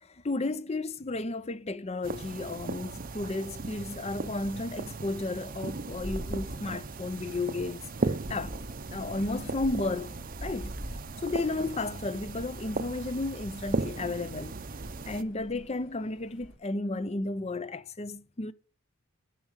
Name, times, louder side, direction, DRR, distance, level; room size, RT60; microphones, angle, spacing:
voice 1, 0.0-8.6 8.9-10.8 11.2-14.6 15.1-18.5, left 2 dB, 30° left, 0.5 m, -33 dB
sound 1, 2.0-15.2, right 3 dB, 40° right, 0.6 m, -37 dB
sound 2, 4.8-16.6, equal, 55° left, 3.8 m, -45 dB
11.0 x 6.3 x 6.4 m
head